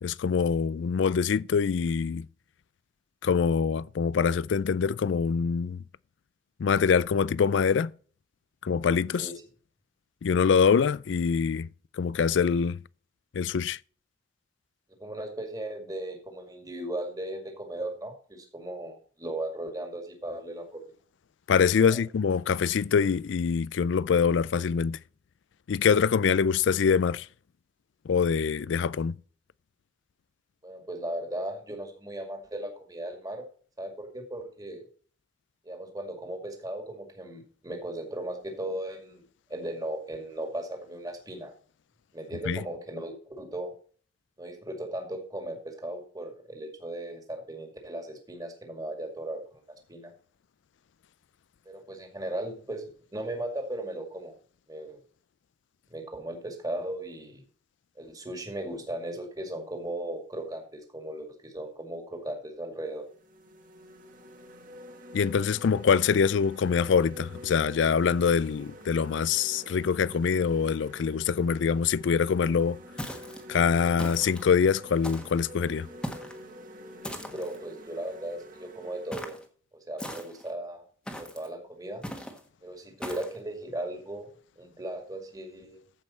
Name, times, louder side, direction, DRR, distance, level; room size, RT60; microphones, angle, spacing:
voice 1, 0.0-2.3 3.2-5.8 6.6-7.9 8.6-9.3 10.2-11.7 12.0-12.8 13.3-13.8 21.5-25.0 25.7-27.3 28.1-29.1 42.5-42.6 65.1-72.8 73.5-75.9, left 6 dB, 75° left, 0.4 m, -24 dB
voice 2, 15.0-20.8 21.8-22.0 30.6-33.5 33.8-34.8 35.6-39.2 39.5-41.5 42.1-43.7 44.4-49.6 49.9-50.1 51.7-54.3 54.7-55.0 55.9-57.4 58.0-63.1 77.0-79.4 79.9-80.8 81.2-82.0 82.6-84.3 84.6-85.8, right 1 dB, 20° right, 2.2 m, -37 dB
sound 1, 62.2-62.4 62.9-79.1, equal, 45° right, 1.6 m, -47 dB
sound 2, 73.0-73.4 74.0-74.5 75.0-75.4 76.0-76.4 77.0-77.6 79.1-79.4 80.0-80.5 81.1-81.5 82.0-82.4 83.0-83.4, equal, 5° left, 1.3 m, -39 dB
14.0 x 5.4 x 4.3 m
head